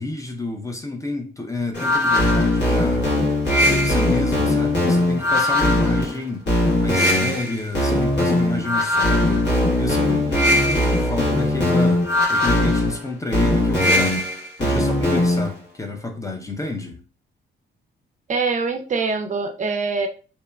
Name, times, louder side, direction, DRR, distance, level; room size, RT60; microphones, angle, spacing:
voice 1, 0.0-3.1 3.6-6.5 6.8-9.5 9.8-14.2 14.6-17.0, left 2 dB, 15° left, 0.4 m, -29 dB
sound 1, 1.7-15.5, left 1 dB, 65° left, 1.4 m, -19 dB
voice 2, 18.3-20.1, right 4 dB, 40° right, 0.4 m, -24 dB
2.8 x 2.1 x 2.2 m
cardioid pair, 90°, 20 cm